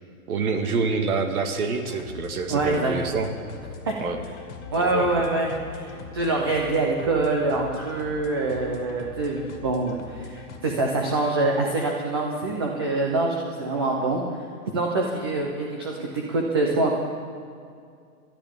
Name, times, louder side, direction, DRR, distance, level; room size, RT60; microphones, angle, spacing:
voice 1, 0.3-3.3 4.0-4.2 4.8-5.2, right 4 dB, 75° right, 6 dB, 1.8 m, -27 dB
sound 1, 1.8-10.6, left 5 dB, 55° left, 1.9 m, -41 dB
voice 2, 2.5-2.9 3.9-4.0 4.7-14.2 14.7-17.0, right 2 dB, 20° right, 0 dB, 0.4 m, -25 dB
22.0 x 12.5 x 3.6 m, 2.3 s
hypercardioid pair, 160°, 44 cm